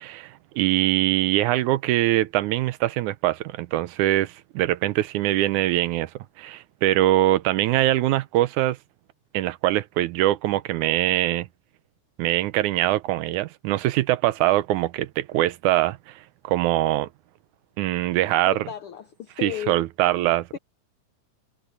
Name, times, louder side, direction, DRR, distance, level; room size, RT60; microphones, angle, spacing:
voice 1, 0.0-6.1 6.4-8.8 9.3-11.5 12.2-16.1 16.4-17.1 17.8-18.7 19.4-20.6, right 15 dB, 80° right, 2.1 m, -23 dB
voice 2, 18.5-19.8 20.5-20.6, left 11 dB, 75° left, 1.2 m, -34 dB
omnidirectional pair, 3.6 m